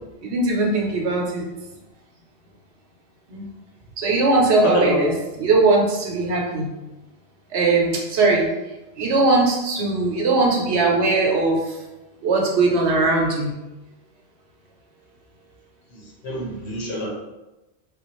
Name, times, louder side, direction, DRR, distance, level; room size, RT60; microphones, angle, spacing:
voice 1, 0.2-1.5 3.3-3.4 4.0-5.1 5.4-6.7 7.5-8.5 9.0-11.8 12.2-13.5, right 3 dB, 75° right, 0 dB, 1.0 m, -20 dB
voice 2, 4.6-5.1 15.9-17.1, left 2 dB, 80° left, -3 dB, 1.2 m, -25 dB
3.5 x 2.4 x 3.0 m, 1.0 s
omnidirectional pair, 1.1 m